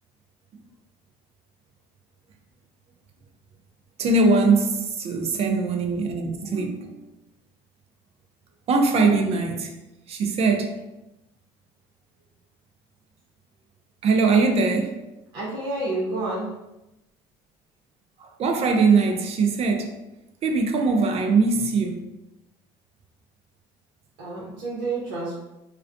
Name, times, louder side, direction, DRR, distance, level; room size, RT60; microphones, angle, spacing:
voice 1, 4.0-7.0 8.7-9.7 10.1-10.8 14.0-15.0 18.2-20.0 20.4-22.1, right 4 dB, 45° right, 5 dB, 0.4 m, -21 dB
voice 2, 15.3-16.5 24.2-25.3, right 2 dB, 75° right, -6 dB, 0.9 m, -29 dB
2.3 x 2.2 x 2.5 m, 0.93 s
supercardioid pair, 80°, 14 cm